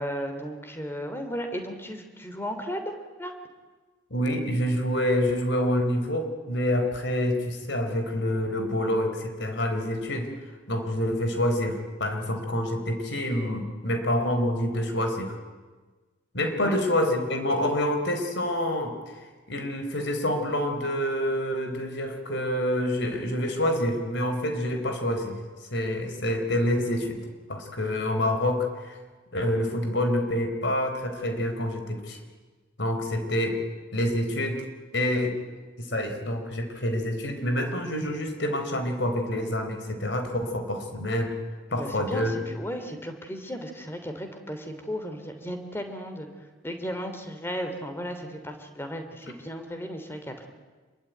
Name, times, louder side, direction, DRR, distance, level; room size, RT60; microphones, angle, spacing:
voice 1, 0.0-2.9 3.2-3.3 16.6-16.8 41.7-50.5, equal, 10° left, 6 dB, 3.0 m, -35 dB
voice 2, 4.1-10.3 10.7-15.3 16.3-19.0 19.5-25.4 25.7-27.2 27.5-29.0 29.3-32.2 32.8-33.6 33.9-34.6 34.9-35.4 35.8-41.3 41.7-42.3, left 1 dB, 65° left, 6 dB, 4.2 m, -27 dB
26.5 x 23.0 x 9.3 m, 1.3 s
head